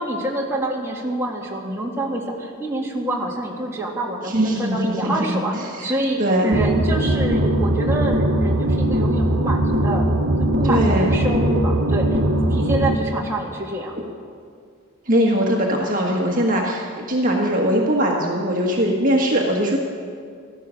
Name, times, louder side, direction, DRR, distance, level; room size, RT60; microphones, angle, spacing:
voice 1, 0.0-10.1 10.4-12.2 12.5-13.9, right 1 dB, 10° right, -3 dB, 2.0 m, -26 dB
voice 2, 4.2-5.9 6.2-6.5 10.6-11.1 14.0-14.1 15.1-19.8, equal, 40° right, -1 dB, 1.5 m, -21 dB
sound 1, 6.5-13.0, right 1 dB, 60° right, 1.2 m, -20 dB
15.5 x 13.0 x 6.3 m, 2.2 s
head